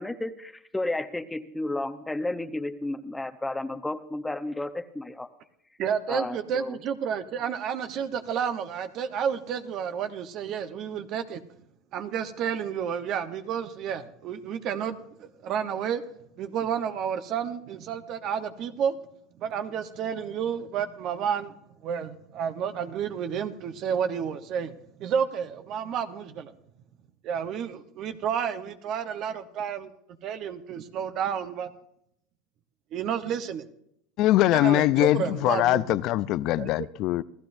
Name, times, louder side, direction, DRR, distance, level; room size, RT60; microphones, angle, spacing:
voice 1, 0.0-5.3 6.1-6.8, left 2 dB, 10° left, 0.8 m, -32 dB
voice 2, 5.8-11.4 11.9-16.0 16.4-18.9 19.4-21.5 21.8-26.5 27.2-29.9 30.2-31.7 32.9-33.7 34.5-36.0 36.6-36.7, right 8 dB, 50° right, 0.9 m, -31 dB
voice 3, 34.2-37.2, left 15 dB, 55° left, 0.5 m, -22 dB
27.5 x 15.0 x 2.6 m
supercardioid pair, 110°, 0 cm